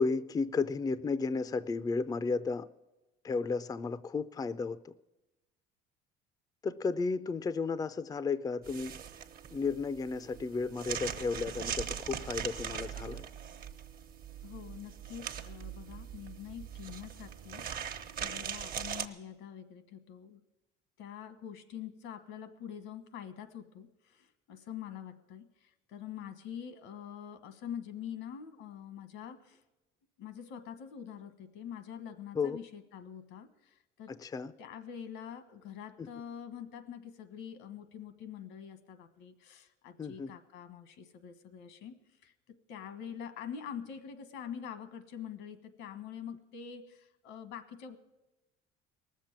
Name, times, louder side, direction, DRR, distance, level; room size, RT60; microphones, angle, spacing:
voice 1, 0.0-2.7 3.2-4.9 6.6-8.9 9.5-13.3 32.3-32.6 34.1-34.5 36.0-36.1 40.0-40.3, left 4 dB, 20° left, 15 dB, 0.4 m, -33 dB
sound 1, 8.6-19.1, right 8 dB, 50° right, 1.1 m, -41 dB
voice 2, 14.4-20.4 21.0-29.6 30.2-34.1 34.6-42.0 42.2-48.0, left 8 dB, 85° left, 12 dB, 1.4 m, -45 dB
19.0 x 7.4 x 8.7 m, 1.0 s
cardioid pair, 110°, 19 cm